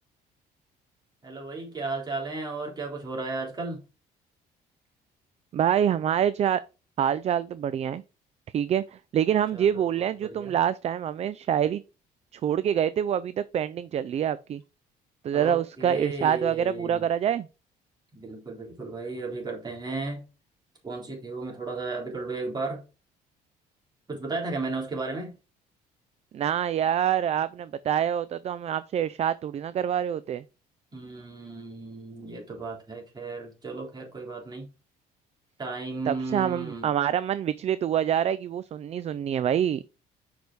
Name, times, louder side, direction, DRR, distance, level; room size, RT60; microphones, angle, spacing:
voice 1, 1.2-3.8 9.5-9.8 10.2-10.5 15.3-17.1 18.1-20.2 20.8-22.8 24.1-25.3 30.9-34.7 35.6-36.9, right 3 dB, 25° right, 3.6 m, -34 dB
voice 2, 5.5-6.6 7.0-8.0 8.5-8.8 9.1-11.8 12.3-14.6 15.2-17.5 26.3-30.4 36.1-39.8, right 9 dB, 40° right, 0.4 m, -26 dB
6.0 x 5.2 x 4.6 m
cardioid pair, 110°, 17 cm